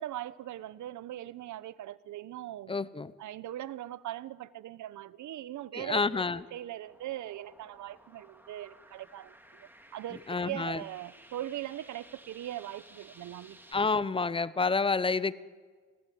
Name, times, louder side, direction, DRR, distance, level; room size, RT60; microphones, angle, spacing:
voice 1, 0.0-2.7 3.2-6.2 6.5-13.6, right 13 dB, 75° right, 1.0 m, -40 dB
voice 2, 2.7-3.1 5.7-6.4 10.3-10.8 13.7-15.3, left 4 dB, 15° left, 0.8 m, -29 dB
sound 1, 6.8-13.7, right 1 dB, 5° right, 3.0 m, -56 dB
25.0 x 16.5 x 9.4 m
cardioid pair, 90°, 30 cm